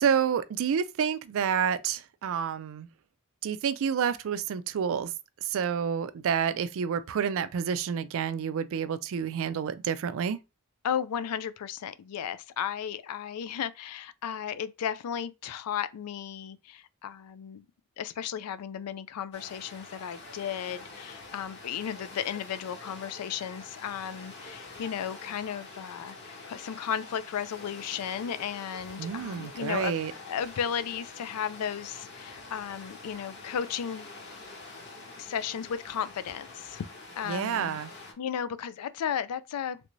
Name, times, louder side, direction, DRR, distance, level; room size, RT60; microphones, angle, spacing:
voice 1, 0.0-2.9 3.4-5.1 5.4-10.4 29.0-30.1 37.3-37.9, right 7 dB, 65° right, 0.3 m, -29 dB
voice 2, 10.8-17.7 18.0-34.2 35.2-36.8 37.2-37.8 38.2-39.8, left 8 dB, 90° left, 0.4 m, -34 dB
sound 1, 19.3-38.1, left 3 dB, 50° left, 1.0 m, -46 dB
3.3 x 2.6 x 3.0 m
head